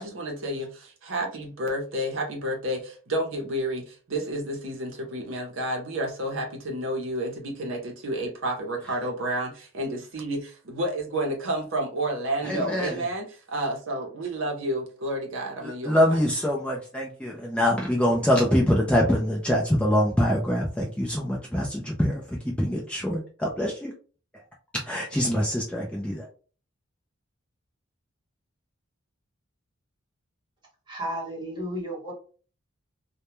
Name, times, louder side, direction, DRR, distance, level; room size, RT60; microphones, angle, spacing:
voice 1, 0.0-16.2, right 1 dB, 65° right, 2 dB, 0.6 m, -30 dB
voice 2, 12.4-13.0 15.6-23.9 24.8-26.3, equal, 5° left, -2 dB, 0.3 m, -24 dB
voice 3, 30.9-32.1, right 1 dB, 20° right, -3 dB, 1.0 m, -33 dB
2.2 x 2.1 x 2.9 m, 0.38 s
head